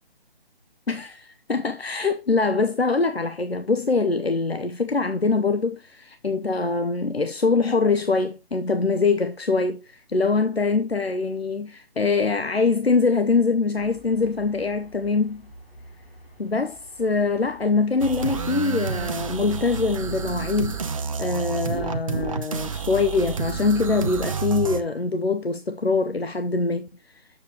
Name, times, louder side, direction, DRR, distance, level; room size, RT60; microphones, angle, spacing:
voice 1, 0.9-15.4 16.4-20.8 21.2-26.9, left 4 dB, 90° left, 0.8 m, -23 dB
sound 1, 13.7-20.4, equal, 10° left, 1.2 m, -50 dB
sound 2, 18.0-24.8, right 5 dB, 35° right, 0.7 m, -29 dB
7.4 x 6.5 x 2.9 m
figure-of-eight pair, 145°, 30 cm